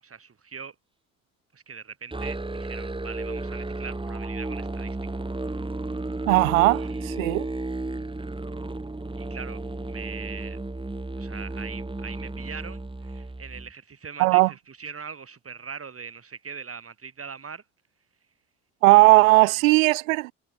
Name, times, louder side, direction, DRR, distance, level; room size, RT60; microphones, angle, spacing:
voice 1, 0.0-0.8 1.5-5.2 6.5-7.0 9.2-9.6 9.9-10.6 11.2-17.6 18.9-19.5, right 6 dB, 35° right, 7.6 m, -41 dB
Musical instrument, 2.1-13.7, right 2 dB, 15° right, 2.5 m, -33 dB
voice 2, 6.3-7.5 14.2-14.5 18.8-20.3, right 22 dB, 85° right, 0.7 m, -18 dB
hypercardioid pair, 60°, 39 cm